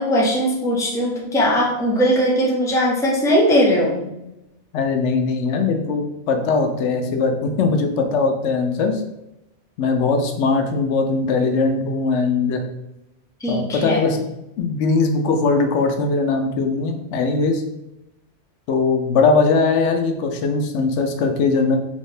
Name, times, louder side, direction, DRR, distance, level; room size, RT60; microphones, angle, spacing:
voice 1, 0.0-4.0 13.4-14.1, equal, 5° left, -3 dB, 0.5 m, -19 dB
voice 2, 4.7-9.0 9.8-12.6 13.5-14.2 14.6-17.6 18.7-21.8, left 4 dB, 90° left, 5 dB, 0.9 m, -20 dB
3.5 x 2.7 x 3.2 m, 0.89 s
omnidirectional pair, 1.1 m